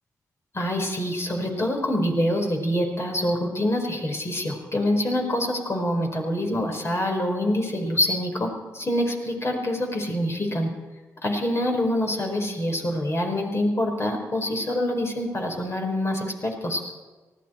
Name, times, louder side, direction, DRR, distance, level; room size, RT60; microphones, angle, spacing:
voice 1, 0.5-10.7 11.2-16.8, left 1 dB, 40° left, 2 dB, 4.9 m, -25 dB
19.5 x 16.5 x 4.5 m, 1.3 s
supercardioid pair, 50°, 7 cm